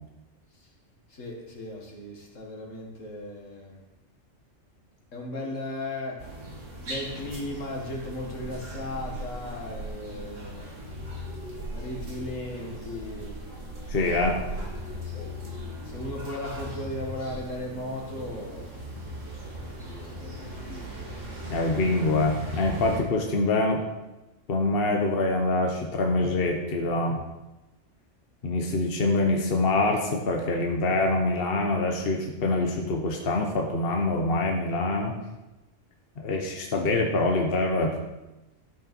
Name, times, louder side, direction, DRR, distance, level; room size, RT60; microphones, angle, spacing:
voice 1, 1.1-3.8 5.1-6.2 6.8-10.8 11.7-13.4 15.1-15.3 15.8-18.7 19.6-21.1, left 1 dB, 80° left, -2 dB, 2.4 m, -37 dB
sound 1, 6.2-23.0, equal, 75° right, 2.4 m, -38 dB
voice 2, 13.9-14.3 21.5-23.8 24.5-27.2 28.4-35.1 36.2-38.0, left 2 dB, 50° left, 2 dB, 1.2 m, -25 dB
13.0 x 6.6 x 4.5 m, 1.0 s
omnidirectional pair, 1.3 m